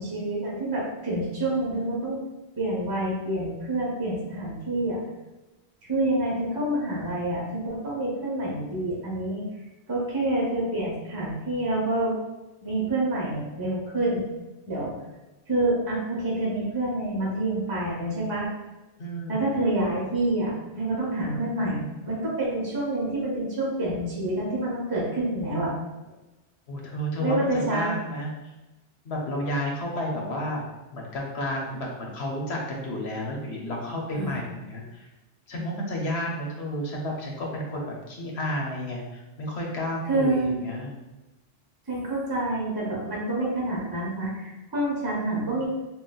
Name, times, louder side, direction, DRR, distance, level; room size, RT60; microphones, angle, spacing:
voice 1, 0.0-2.2 2.6-5.0 5.9-9.5 9.9-12.1 12.6-14.2 14.7-14.9 15.5-18.5 19.3-25.7 27.2-27.9 34.1-34.4 40.0-40.7 41.9-45.7, right 1 dB, 25° right, -5 dB, 0.7 m, -27 dB
voice 2, 19.0-19.4 26.7-28.3 29.0-30.6 30.9-35.0 35.5-41.0, equal, 90° left, -2 dB, 1.0 m, -31 dB
3.8 x 2.4 x 2.3 m, 1.1 s
omnidirectional pair, 1.1 m